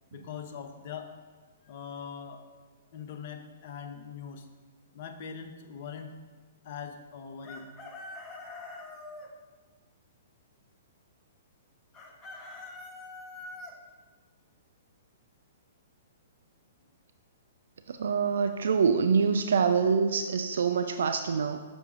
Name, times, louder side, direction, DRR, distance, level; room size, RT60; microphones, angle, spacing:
voice 1, 0.1-1.1 1.6-2.4 2.9-4.5 4.9-6.2 6.6-7.7, left 7 dB, 45° left, 5 dB, 0.8 m, -42 dB
Chicken rooster, 7.4-9.3 11.9-13.7, left 2 dB, 15° left, 0.9 m, -44 dB
voice 2, 17.9-21.6, right 5 dB, 65° right, 8 dB, 0.3 m, -25 dB
6.9 x 5.9 x 3.7 m, 1.3 s
figure-of-eight pair, 115°, 0 cm